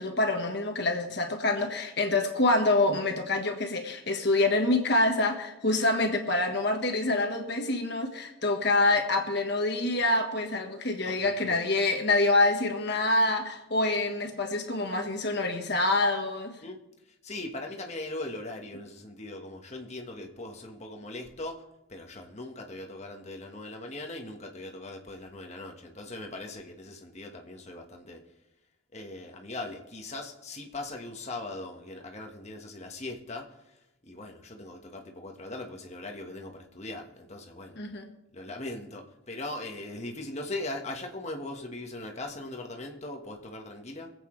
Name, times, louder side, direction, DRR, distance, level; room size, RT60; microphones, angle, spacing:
voice 1, 0.0-16.6 37.7-38.1, left 2 dB, 55° left, 4 dB, 1.4 m, -26 dB
voice 2, 11.0-11.6 16.6-16.8 17.2-21.6 21.9-28.2 28.9-33.5 34.0-37.8 38.3-44.1, left 2 dB, 35° left, 2 dB, 1.4 m, -40 dB
24.0 x 8.3 x 3.3 m, 0.93 s
head